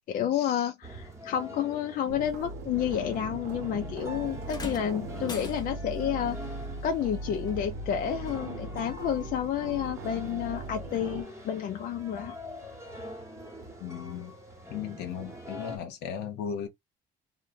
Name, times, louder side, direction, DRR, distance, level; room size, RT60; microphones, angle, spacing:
voice 1, 0.1-6.4 6.8-12.4, left 9 dB, 55° left, 0.4 m, -30 dB
sound 1, 0.8-15.8, equal, 15° right, 1.0 m, -44 dB
sound 2, 2.1-11.2, right 2 dB, 90° right, 0.5 m, -39 dB
sound 3, 4.5-6.0 7.5-7.6 8.5-8.6, left 4 dB, 25° left, 0.8 m, -41 dB
voice 2, 13.8-14.3 14.7-16.7, left 8 dB, 75° left, 0.8 m, -36 dB
2.7 x 2.1 x 2.5 m
cardioid pair, 110°, 17 cm